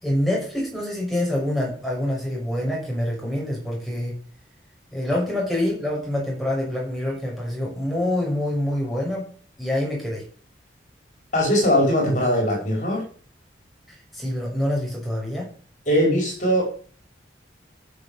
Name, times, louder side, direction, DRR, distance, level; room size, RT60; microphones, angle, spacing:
voice 1, 0.0-4.1 4.9-9.3 9.6-10.2 13.9-15.5, left 1 dB, ahead, -3 dB, 6.2 m, -26 dB
voice 2, 11.3-13.0 15.9-16.6, equal, 45° left, -1 dB, 5.0 m, -20 dB
13.0 x 6.9 x 7.1 m, 0.43 s
head